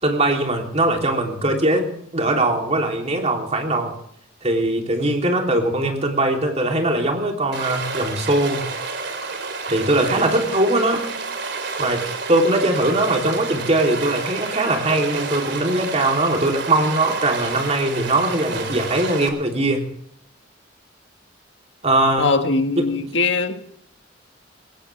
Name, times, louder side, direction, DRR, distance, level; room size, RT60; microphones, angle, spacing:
voice 1, 0.0-4.0 4.4-8.7 9.7-11.1 11.8-19.9 21.8-22.3 22.7-22.9, right 2 dB, 35° right, 2 dB, 3.3 m, -21 dB
Stream, 7.5-19.3, right 4 dB, 60° right, 3.3 m, -30 dB
voice 2, 22.2-23.6, left 3 dB, 65° left, 6 dB, 1.6 m, -21 dB
21.0 x 18.5 x 3.5 m, 0.67 s
head